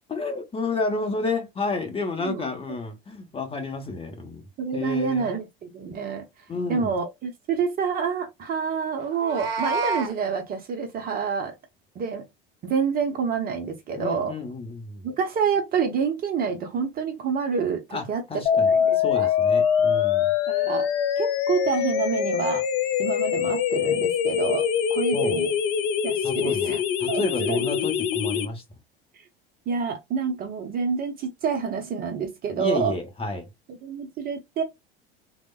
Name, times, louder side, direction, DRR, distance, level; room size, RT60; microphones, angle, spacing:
voice 1, 0.1-4.4 4.7-5.3 6.5-6.9 13.9-15.1 17.9-18.7 19.0-20.3 25.1-25.4 26.2-28.6 32.6-33.5, left 3 dB, 20° left, 0.8 m, -30 dB
voice 2, 4.6-6.2 6.7-11.5 12.0-12.2 12.6-14.3 15.0-19.3 20.5-20.9 21.2-22.6 23.0-25.5 26.0-26.8 27.1-27.7 29.7-32.9 33.7-34.6, right 6 dB, 30° right, 0.6 m, -28 dB
Meow, 9.0-10.1, right 4 dB, 70° right, 0.6 m, -28 dB
sound 1, 18.5-28.5, left 8 dB, 45° left, 0.4 m, -24 dB
3.2 x 2.1 x 2.3 m
figure-of-eight pair, 75°, 30 cm